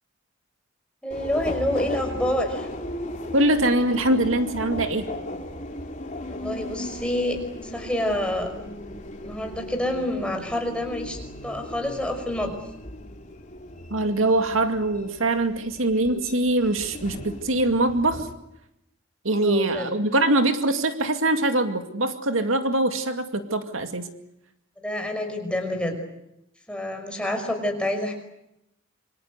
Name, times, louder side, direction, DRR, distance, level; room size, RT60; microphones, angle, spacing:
voice 1, 1.0-2.7 6.3-8.5 9.2-12.5 19.4-19.9 24.8-25.9 26.7-28.1, left 1 dB, 5° left, 3 dB, 5.4 m, -28 dB
Subway metro underground, 1.1-18.3, left 1 dB, 35° left, 2.9 m, -37 dB
voice 2, 3.3-5.1 13.9-18.3 19.2-24.1, right 2 dB, 80° right, 7 dB, 2.3 m, -23 dB
27.0 x 25.0 x 8.1 m, 0.85 s
head